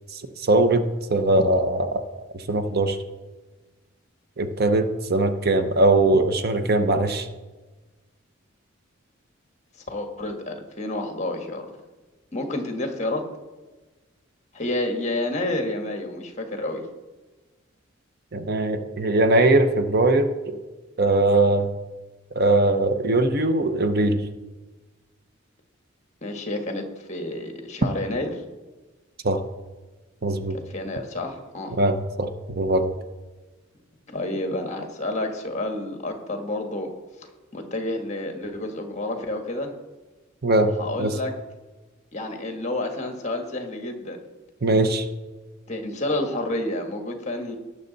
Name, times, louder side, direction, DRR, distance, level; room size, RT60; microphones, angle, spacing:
voice 1, 0.1-0.8 1.1-2.0 2.3-3.0 4.4-7.3 18.3-20.6 21.0-21.7 22.3-24.2 29.2-29.4 30.2-30.6 31.7-32.9 40.4-40.7 41.0-41.1 44.6-45.1, right 2 dB, 50° right, 8 dB, 0.8 m, -21 dB
voice 2, 9.9-11.7 12.3-13.2 14.5-16.8 26.2-28.3 30.5-31.8 34.1-36.9 37.5-39.7 40.8-41.3 42.1-44.2 45.7-47.6, left 1 dB, 35° left, 5 dB, 1.5 m, -29 dB
18.5 x 6.6 x 4.0 m, 1.2 s
head